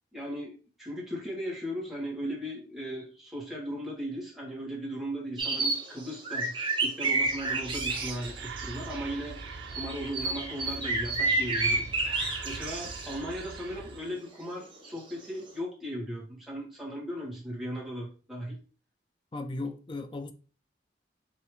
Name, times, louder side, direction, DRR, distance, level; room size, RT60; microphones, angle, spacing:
voice 1, 0.1-9.4 9.7-18.6, equal, ahead, 1.5 m, -37 dB
sound 1, 5.4-9.0 9.4-13.6 14.8-14.9 15.2-15.5, right 3 dB, 25° right, 0.9 m, -30 dB
Whispering, 7.2-14.1, right 4 dB, 75° right, 0.5 m, -42 dB
voice 2, 19.3-20.3, left 2 dB, 25° left, 0.4 m, -36 dB
4.6 x 3.0 x 3.3 m
head